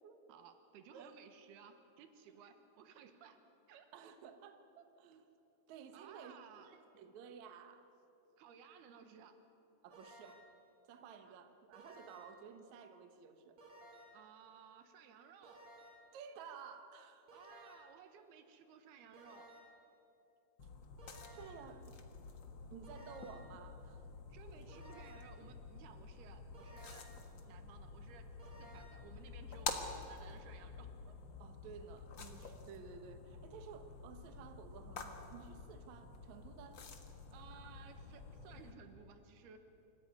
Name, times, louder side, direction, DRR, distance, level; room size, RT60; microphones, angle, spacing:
voice 1, 0.0-3.4 3.7-3.9 5.9-6.7 8.4-9.4 11.3-11.4 14.1-15.6 17.3-19.5 24.3-27.1 27.5-28.3 28.6-31.1 37.3-39.6, right 7 dB, 75° right, 8 dB, 3.2 m, -58 dB
voice 2, 3.9-5.3 5.7-6.3 6.6-7.9 9.8-10.4 10.9-13.6 16.1-17.3 21.3-22.0 22.7-24.0 31.4-36.8, right 6 dB, 60° right, 7 dB, 2.1 m, -54 dB
sound 1, 9.9-10.6 11.7-12.5 13.6-14.3 15.4-16.2 17.3-18.0 19.1-19.9 21.0-21.7 22.8-23.6 24.7-25.4 26.5-27.3 28.4-29.1, right 1 dB, 35° right, 3.8 m, -58 dB
sound 2, 20.6-38.7, left 4 dB, 60° left, 1.2 m, -49 dB
27.0 x 14.5 x 9.6 m, 2.8 s
omnidirectional pair, 4.6 m